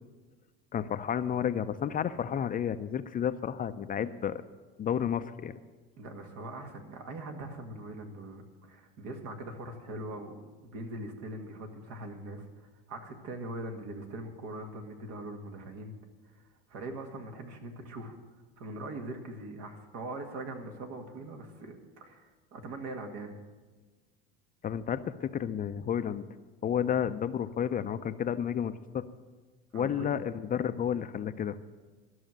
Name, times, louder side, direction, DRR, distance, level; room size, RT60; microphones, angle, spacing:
voice 1, 0.7-4.4 4.8-5.5 24.6-26.2 26.6-29.0 29.7-31.6, left 9 dB, 30° left, 11 dB, 0.5 m, -31 dB
voice 2, 6.0-15.9 16.3-18.2 18.6-23.3 29.7-30.1, right 2 dB, 65° right, 3 dB, 2.0 m, -42 dB
12.5 x 6.3 x 8.9 m, 1.3 s
supercardioid pair, 95°, 29 cm